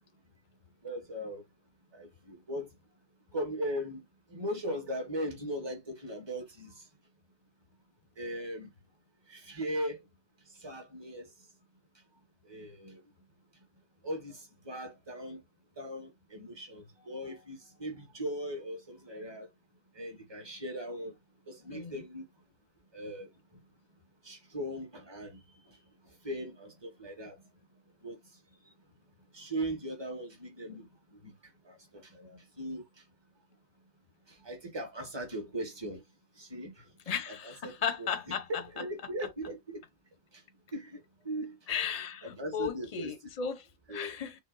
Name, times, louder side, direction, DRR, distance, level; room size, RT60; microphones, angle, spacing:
voice 1, 0.8-1.5 1.9-2.7 3.3-6.9 8.2-8.7 9.3-10.0 10.5-11.3 12.4-13.0 14.0-15.4 15.8-19.5 19.9-21.2 21.5-22.3 22.9-23.3 24.2-25.4 25.6-25.8 26.0-27.4 28.0-28.2 28.6-28.7 29.3-33.0 34.3-36.0 36.3-36.9 37.3-38.1 38.5-39.8 40.3-40.4 40.7-41.6 42.2-43.1 43.9-44.1, equal, 20° right, 1.4 m, -39 dB
voice 2, 37.1-38.5 41.7-44.4, left 7 dB, 40° left, 0.7 m, -35 dB
6.2 x 2.1 x 3.9 m
omnidirectional pair, 1.2 m